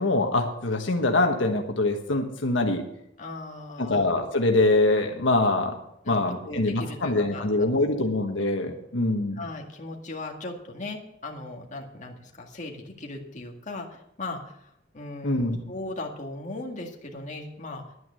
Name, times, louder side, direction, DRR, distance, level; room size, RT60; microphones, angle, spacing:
voice 1, 0.0-2.8 3.8-5.8 6.1-9.4 15.2-15.6, left 2 dB, 80° left, 3 dB, 1.5 m, -24 dB
voice 2, 3.2-4.1 6.0-7.7 9.3-17.8, left 2 dB, 40° left, 1 dB, 1.9 m, -38 dB
11.0 x 9.5 x 6.9 m, 0.76 s
head